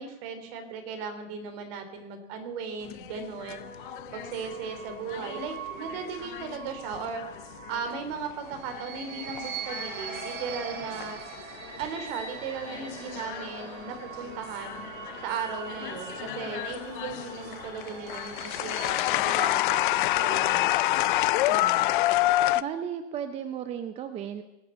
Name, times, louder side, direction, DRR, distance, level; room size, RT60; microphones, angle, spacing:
voice 1, 0.0-3.7 4.1-7.2 7.7-11.2 11.8-14.8 15.2-21.1 21.5-21.9, right 5 dB, 45° right, 7 dB, 3.3 m, -37 dB
sound 1, 2.8-8.1 8.5-11.3 11.7-12.1 12.7-15.3 15.7-22.6, left 17 dB, 40° left, 0.4 m, -29 dB
sound 2, 3.0-19.8, right 5 dB, 85° right, 3.2 m, -42 dB
voice 2, 22.5-24.4, right 8 dB, 15° right, 9 dB, 0.6 m, -34 dB
19.5 x 7.9 x 8.3 m, 0.93 s
supercardioid pair, 150°, 39 cm